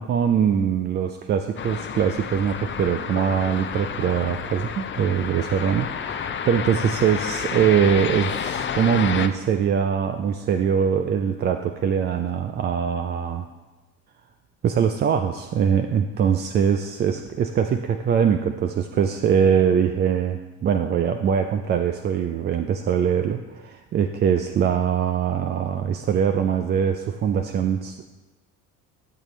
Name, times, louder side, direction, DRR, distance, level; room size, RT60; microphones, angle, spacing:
voice 1, 0.0-13.5 14.6-28.0, right 7 dB, 25° right, 7 dB, 0.3 m, -22 dB
sound 1, 1.6-9.3, left 7 dB, 25° left, 0.6 m, -30 dB
12.5 x 6.6 x 3.1 m, 1.2 s
hypercardioid pair, 70°, 47 cm